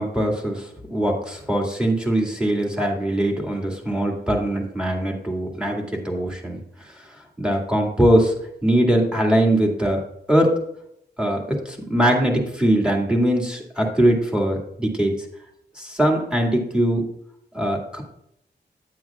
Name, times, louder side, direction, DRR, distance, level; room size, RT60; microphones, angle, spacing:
voice 1, 0.0-6.6 7.4-8.3 8.6-10.0 10.3-10.5 11.2-15.1 15.8-17.1 17.5-18.0, right 1 dB, 5° right, 0 dB, 2.1 m, -21 dB
9.5 x 9.2 x 2.4 m, 0.75 s
wide cardioid pair, 85°, 18 cm